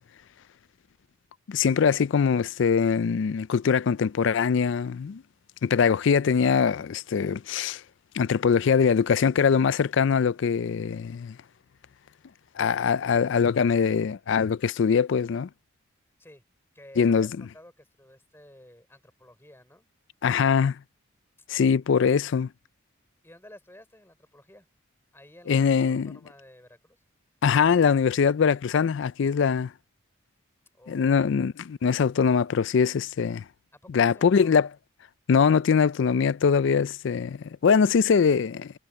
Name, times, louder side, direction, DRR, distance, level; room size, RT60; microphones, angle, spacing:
voice 1, 1.5-5.2 5.6-7.8 8.1-11.4 12.6-15.5 17.0-17.3 20.2-20.8 21.5-22.5 25.5-26.2 27.4-29.7 30.9-33.4 33.9-34.7 35.3-38.7, left 6 dB, 60° left, 0.4 m, -22 dB
voice 2, 16.7-19.9 23.2-24.7 25.1-27.0 30.7-31.3 33.7-34.6, left 1 dB, 10° left, 4.5 m, -52 dB
head